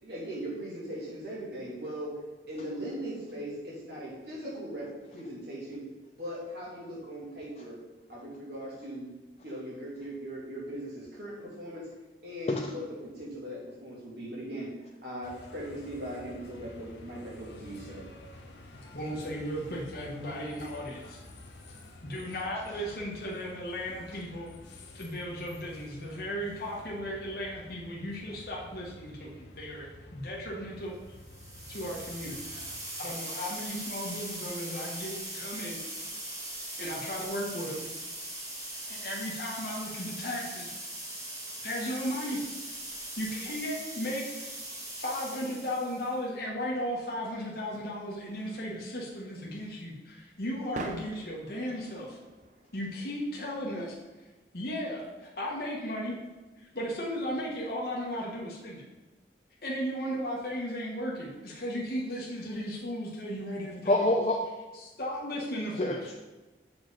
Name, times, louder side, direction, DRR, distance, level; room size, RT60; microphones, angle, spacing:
voice 1, 0.0-2.1 2.5-5.8 6.1-7.8 8.1-9.1 9.4-11.9 12.2-12.8 13.1-14.7 15.0-18.0, equal, 65° right, -5 dB, 2.7 m, -39 dB
sound 1, 15.2-32.8, left 1 dB, 75° left, 1.1 m, -50 dB
voice 2, 18.9-21.2 22.0-24.5 24.9-29.9 30.1-30.9 31.7-32.5 33.0-35.8 36.8-37.8 38.9-40.7 41.6-42.5 43.2-44.6 45.0-52.2 52.7-54.0 54.5-56.2 56.6-58.8 59.6-63.9 64.8-65.9, equal, 55° left, -4 dB, 1.2 m, -35 dB
sound 2, 31.2-46.1, right 1 dB, 20° right, 1.6 m, -40 dB
sound 3, 46.9-58.1, right 2 dB, 45° right, 0.6 m, -49 dB
voice 3, 63.9-64.6 65.8-66.2, left 1 dB, 35° left, 1 dB, 0.5 m, -27 dB
7.2 x 6.0 x 4.0 m, 1.2 s
head